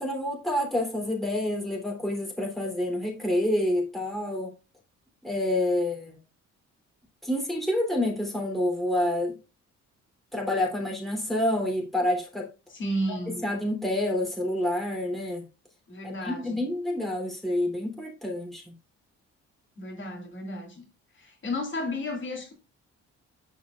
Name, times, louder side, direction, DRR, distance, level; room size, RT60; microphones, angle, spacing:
voice 1, 0.0-4.5 5.2-6.2 7.2-9.4 10.3-12.5 13.1-15.5 16.0-18.7, left 1 dB, ahead, 3.1 m, -28 dB
voice 2, 12.7-13.4 15.9-16.6 19.8-20.8 21.1-22.5, left 1 dB, 40° left, 2.7 m, -33 dB
11.5 x 5.0 x 2.4 m
cardioid pair, 90°, 30 cm